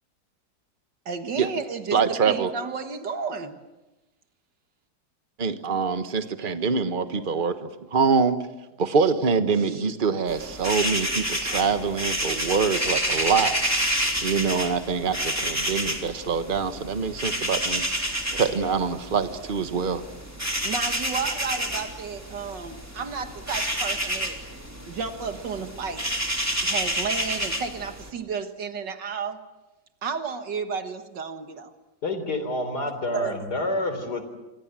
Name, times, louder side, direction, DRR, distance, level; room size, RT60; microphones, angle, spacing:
voice 1, 1.1-3.6 9.5-9.9 20.6-24.4 24.9-26.1 26.6-29.4 30.0-31.7 33.1-33.4, right 5 dB, 70° right, 8 dB, 2.1 m, -32 dB
voice 2, 1.9-2.5 5.4-8.4 8.8-13.6 13.8-17.8 18.3-20.0, right 5 dB, 30° right, 9 dB, 1.3 m, -25 dB
sound 1, 10.3-28.1, right 1 dB, 10° right, 3.3 m, -29 dB
voice 3, 32.0-34.2, left 2 dB, 60° left, 9 dB, 4.2 m, -28 dB
28.5 x 24.5 x 7.6 m, 1.0 s
omnidirectional pair, 2.0 m